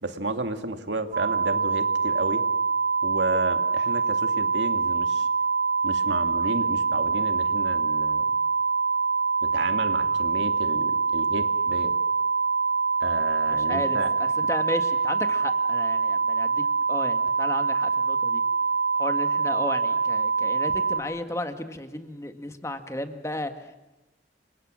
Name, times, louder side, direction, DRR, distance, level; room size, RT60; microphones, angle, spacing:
voice 1, 0.0-2.4 3.0-5.3 5.8-8.2 9.4-11.9 13.0-14.1, right 2 dB, 85° right, 7 dB, 2.3 m, -32 dB
sound 1, 1.1-21.0, right 5 dB, 55° right, 3.6 m, -25 dB
voice 2, 13.5-18.4 19.0-23.8, left 1 dB, 15° left, 7 dB, 1.8 m, -34 dB
29.0 x 25.0 x 6.3 m, 0.99 s
head